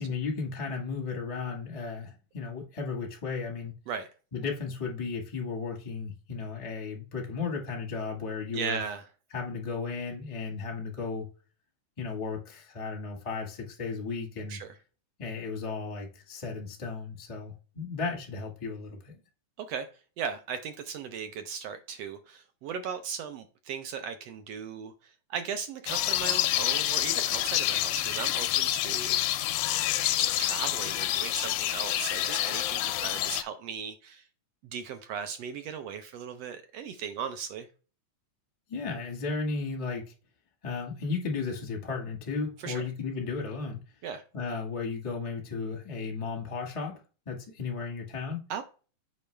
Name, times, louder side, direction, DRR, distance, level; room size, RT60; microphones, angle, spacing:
voice 1, 0.0-3.7 4.3-8.8 9.3-11.3 12.0-14.6 15.2-19.1 38.7-40.1 40.6-43.8 44.3-47.0 47.2-48.4, left 4 dB, 45° left, 0.4 m, -34 dB
voice 2, 8.5-9.0 14.5-14.7 19.6-19.9 20.2-29.5 30.4-34.2 34.6-37.7 42.6-42.9 44.0-44.2 48.5-48.6, right 7 dB, 75° right, 1.4 m, -37 dB
sound 1, 25.9-33.4, left 14 dB, 80° left, 1.6 m, -28 dB
7.0 x 5.3 x 3.3 m
omnidirectional pair, 3.5 m